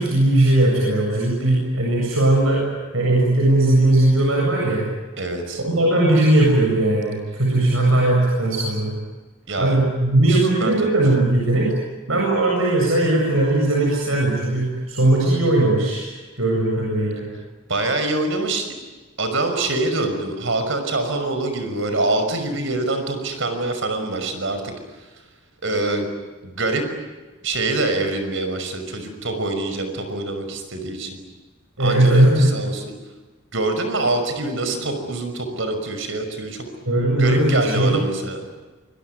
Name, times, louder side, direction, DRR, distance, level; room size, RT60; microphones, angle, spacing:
voice 1, 0.0-2.7 2.9-4.9 5.6-9.0 9.6-11.7 12.1-17.2 31.8-32.5 36.9-38.0, right 1 dB, 80° right, -2 dB, 7.5 m, -18 dB
voice 2, 5.2-5.6 9.5-9.8 10.3-10.9 17.7-18.8 19.2-25.2 25.6-26.1 26.4-26.9 27.4-31.2 31.8-32.9 33.5-36.7 37.2-38.5, right 2 dB, 65° right, 7 dB, 5.9 m, -25 dB
25.5 x 22.5 x 9.6 m, 1.3 s
head